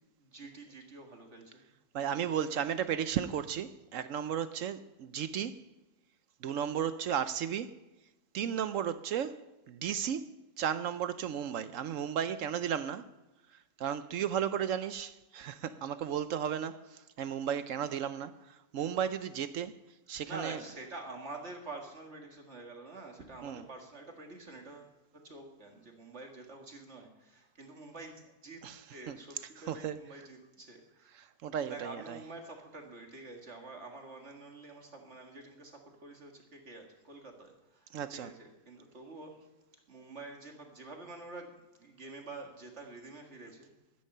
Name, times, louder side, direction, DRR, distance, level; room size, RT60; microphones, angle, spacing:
voice 1, 0.2-1.7 2.0-3.0 20.2-24.9 25.2-28.6 28.9-31.2 31.6-39.3 39.9-41.5 41.8-43.7, right 3 dB, 50° right, 2.1 m, -47 dB
voice 2, 1.9-5.6 6.4-7.7 8.3-10.2 10.6-13.0 13.8-18.3 18.7-19.7 20.1-20.6 23.4-23.6 28.6-28.8 29.1-29.2 29.7-30.0 31.2-32.2 37.9-38.3, right 9 dB, 70° right, 0.9 m, -34 dB
13.0 x 9.7 x 5.5 m
omnidirectional pair, 1.6 m